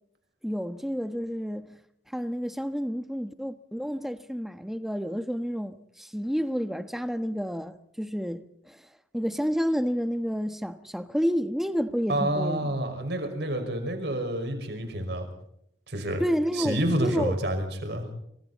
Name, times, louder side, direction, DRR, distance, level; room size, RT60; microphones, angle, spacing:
voice 1, 0.4-1.7 2.1-8.8 9.1-12.7 16.2-17.3, equal, ahead, 1.1 m, -30 dB
voice 2, 12.1-15.3 15.9-16.2 16.5-18.1, right 1 dB, 60° right, 5.7 m, -28 dB
27.5 x 25.5 x 4.2 m
head